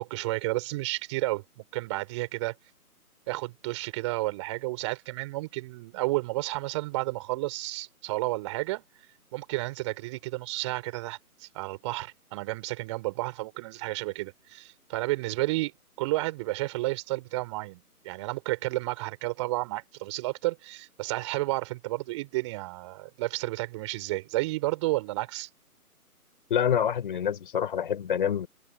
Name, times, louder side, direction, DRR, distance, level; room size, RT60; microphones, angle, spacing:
voice 1, 0.0-2.5 3.3-8.8 9.3-15.7 16.0-25.5, right 20 dB, 20° right, 6.2 m, -31 dB
voice 2, 26.5-28.5, left 8 dB, 35° left, 5.8 m, -26 dB
figure-of-eight pair, 150°, 46 cm